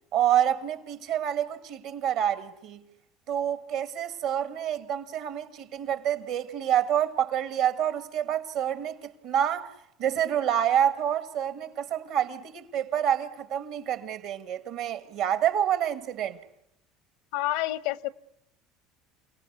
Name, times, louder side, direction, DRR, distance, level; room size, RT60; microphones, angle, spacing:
voice 1, 0.1-2.8 3.3-9.7 10.0-16.4, right 10 dB, 65° right, 1.9 m, -27 dB
voice 2, 17.3-18.1, left 15 dB, 75° left, 0.8 m, -28 dB
29.0 x 18.5 x 8.2 m
hypercardioid pair, 90°, 0 cm